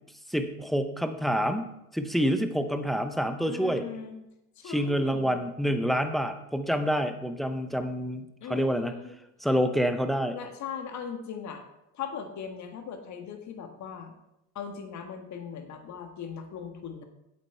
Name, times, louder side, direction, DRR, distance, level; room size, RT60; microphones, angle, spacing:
voice 1, 0.3-3.8 4.6-8.9 9.4-10.4, equal, ahead, 8 dB, 0.7 m, -27 dB
voice 2, 3.5-4.2 4.6-5.4 8.4-9.1 10.3-11.6 11.9-14.1 14.5-17.0, left 7 dB, 40° left, 6 dB, 1.6 m, -39 dB
8.3 x 8.1 x 4.4 m, 0.87 s
hypercardioid pair, 80°, 45 cm